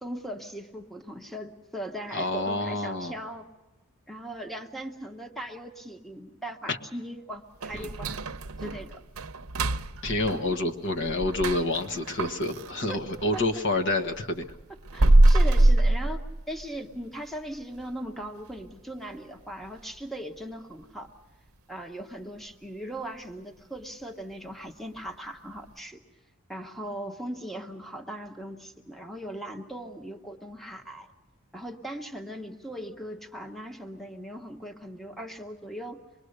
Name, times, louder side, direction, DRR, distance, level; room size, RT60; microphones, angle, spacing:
voice 1, 0.0-3.4 4.1-8.3 8.6-9.0 10.3-10.6 12.9-13.0 13.3-13.4 14.9-16.2 16.5-21.1 21.7-26.0 26.5-31.1 31.5-36.0, right 1 dB, ahead, 4 dB, 1.1 m, -39 dB
voice 2, 2.1-3.1 6.7-6.8 7.7-7.9 10.0-14.4, left 2 dB, 55° left, 5 dB, 1.4 m, -28 dB
sound 1, 7.6-13.5 13.9-16.8 17.1-17.2 17.7-17.8 18.3-18.7 19.0-19.1 19.6-19.7, right 1 dB, 70° right, 0.8 m, -24 dB
25.5 x 21.5 x 6.6 m, 1.1 s
head